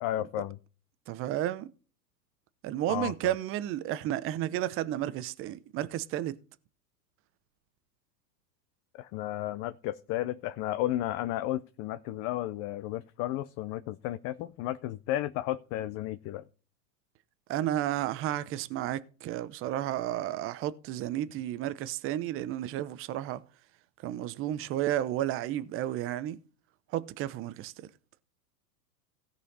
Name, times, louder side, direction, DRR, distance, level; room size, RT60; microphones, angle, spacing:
voice 1, 0.0-0.6 2.9-3.1 8.9-16.4, left 14 dB, 30° left, 0.5 m, -33 dB
voice 2, 1.1-1.7 2.6-6.4 17.5-23.4 24.0-26.4 26.9-27.9, right 12 dB, 25° right, 0.7 m, -32 dB
16.5 x 5.7 x 4.1 m
hypercardioid pair, 120°, 49 cm